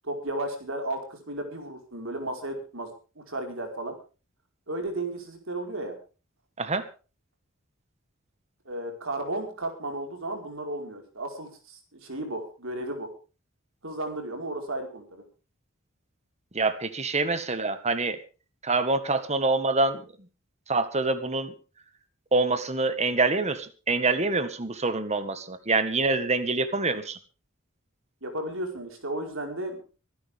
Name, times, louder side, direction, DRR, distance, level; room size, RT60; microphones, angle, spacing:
voice 1, 0.0-2.9 3.2-3.9 4.7-5.9 8.6-13.1 13.8-15.2 28.2-29.8, right 1 dB, 70° right, 3 dB, 4.8 m, -34 dB
voice 2, 16.5-18.2 18.6-20.0 20.7-21.5 22.3-27.2, right 3 dB, 30° right, 11 dB, 1.7 m, -26 dB
25.0 x 11.5 x 3.6 m, 0.35 s
head